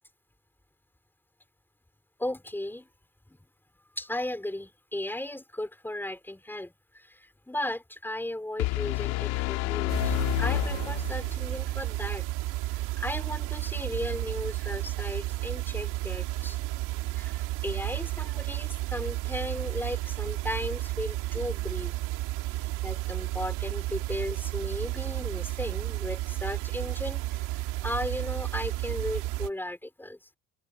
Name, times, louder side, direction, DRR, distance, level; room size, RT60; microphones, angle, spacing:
voice 1, 2.2-2.9 3.3-3.4 4.0-12.3 12.6-16.6 17.1-21.9 22.8-30.2, left 1 dB, 5° left, 4.3 m, -36 dB
sound 1, 8.6-11.6, left 22 dB, 85° left, 3.6 m, -29 dB
sound 2, 9.9-29.5, right 18 dB, 75° right, 2.6 m, -32 dB
open air
cardioid pair, 105°, 31 cm